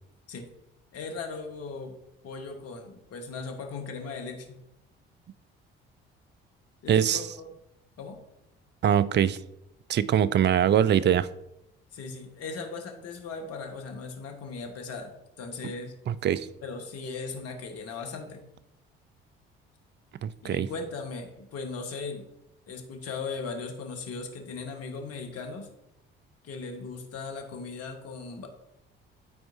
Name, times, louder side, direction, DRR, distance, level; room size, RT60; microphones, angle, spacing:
voice 1, 0.9-1.9 2.2-4.6 6.8-7.5 8.0-8.2 11.9-15.9 16.6-18.4 20.4-22.2 22.7-25.7 26.4-28.5, left 4 dB, 55° left, 4 dB, 1.3 m, -38 dB
voice 2, 6.9-7.2 8.8-9.4 9.9-11.3 16.1-16.5 20.2-20.7, right 9 dB, 40° right, 16 dB, 0.4 m, -23 dB
12.0 x 4.4 x 2.7 m, 0.86 s
hypercardioid pair, 50°, 29 cm